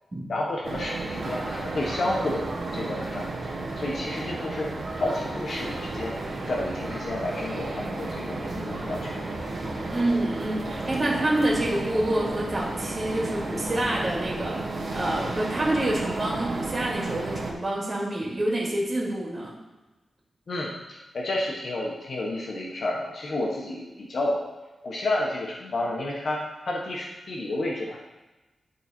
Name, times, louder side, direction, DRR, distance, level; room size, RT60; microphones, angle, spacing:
voice 1, 0.3-2.4 2.7-3.3 3.8-4.7 5.0-6.1 6.5-9.2 20.5-24.5 24.8-28.0, left 1 dB, 60° left, -3 dB, 1.4 m, -30 dB
sound 1, 0.6-17.5, right 2 dB, 55° right, 1.5 m, -33 dB
voice 2, 9.9-14.6 14.9-19.6, right 1 dB, 35° right, -4 dB, 2.4 m, -27 dB
11.5 x 4.2 x 4.4 m, 1.1 s
wide cardioid pair, 90°, 0 cm